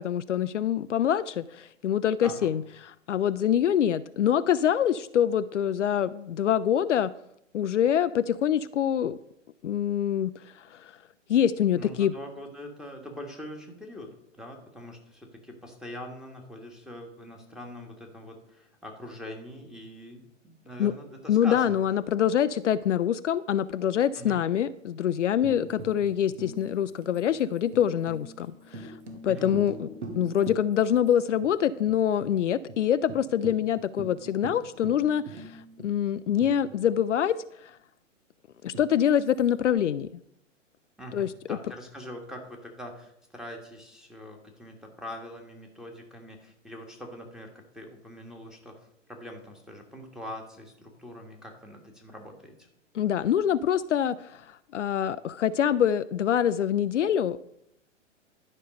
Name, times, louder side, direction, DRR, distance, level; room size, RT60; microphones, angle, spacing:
voice 1, 0.0-7.1 7.5-9.2 9.6-10.9 11.3-12.1 20.8-20.9 21.3-29.0 29.2-37.4 37.6-37.8 38.6-40.1 41.1-41.6 52.9-57.5, left 9 dB, 70° left, 13 dB, 0.5 m, -25 dB
voice 2, 2.2-2.5 11.7-21.7 24.2-24.4 29.2-29.5 41.0-48.8 49.1-52.5, equal, ahead, 2 dB, 1.4 m, -43 dB
Tambourine, 25.4-31.1 31.4-31.5 31.9-32.3 32.7-32.8 33.1-37.2 38.7-39.7, right 2 dB, 65° right, 1.6 m, -44 dB
11.5 x 5.4 x 5.1 m, 0.75 s
figure-of-eight pair, 115°, 38 cm